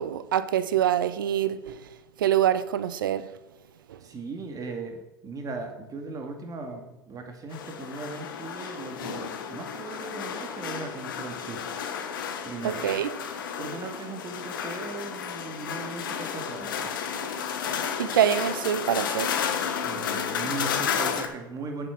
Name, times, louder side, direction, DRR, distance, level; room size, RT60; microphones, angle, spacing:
voice 1, 0.0-1.8 2.2-3.3 3.9-4.0 12.6-13.1 18.0-19.3, right 10 dB, 80° right, 0.7 m, -25 dB
voice 2, 4.0-11.6 12.4-12.8 13.6-16.9 19.8-21.9, right 3 dB, 35° right, 2.3 m, -38 dB
sound 1, 7.5-21.3, left 7 dB, 75° left, 1.2 m, -32 dB
8.4 x 7.8 x 6.0 m
hypercardioid pair, 80°, 11 cm